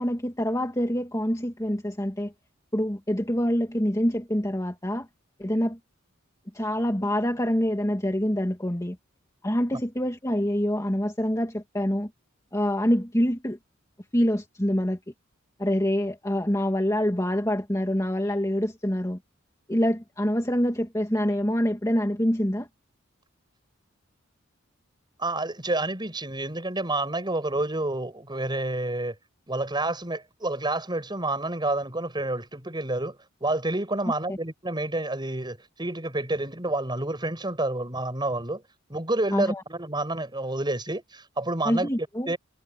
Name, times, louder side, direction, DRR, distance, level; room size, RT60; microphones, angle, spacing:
voice 1, 0.0-2.3 2.7-5.1 5.4-5.8 6.5-9.0 9.4-12.1 12.5-13.6 14.1-15.0 15.6-19.2 19.7-22.7 34.3-34.4 39.3-39.6 41.6-42.3, equal, 15° left, 2.4 m, -26 dB
voice 2, 25.2-29.1 29.5-38.6 38.9-41.9 42.3-42.4, right 2 dB, 20° right, 7.5 m, -29 dB
head